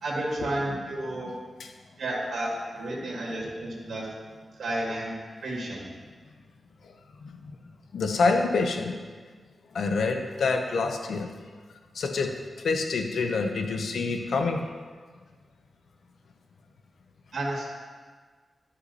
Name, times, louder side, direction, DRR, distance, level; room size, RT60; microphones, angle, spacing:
voice 1, 0.0-1.3 2.0-4.1 4.6-5.2 5.4-5.8 17.3-17.6, right 1 dB, 80° right, -5 dB, 1.9 m, -31 dB
voice 2, 7.2-7.5 7.9-9.0 9.7-11.3 11.9-12.4 12.6-14.6, left 4 dB, 80° left, 4 dB, 0.8 m, -27 dB
11.5 x 5.6 x 4.1 m, 1.5 s
wide cardioid pair, 150°, 0 cm